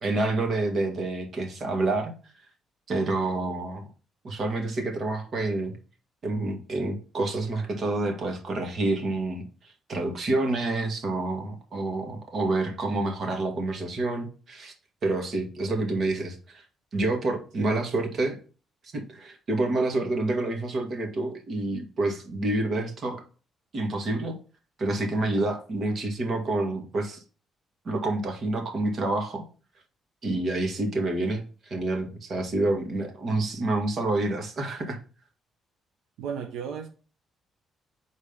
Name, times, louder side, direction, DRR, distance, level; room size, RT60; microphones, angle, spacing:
voice 1, 0.0-2.1 2.9-3.8 4.2-5.7 6.2-9.4 9.9-14.7 15.0-16.6 16.9-18.4 18.9-23.2 23.7-24.4 24.8-27.2 27.9-29.4 30.2-35.0, right 2 dB, 50° right, 2.0 m, -28 dB
voice 2, 36.2-36.9, right 7 dB, 90° right, 0.8 m, -34 dB
5.1 x 4.1 x 5.4 m
cardioid pair, 90°, 0 cm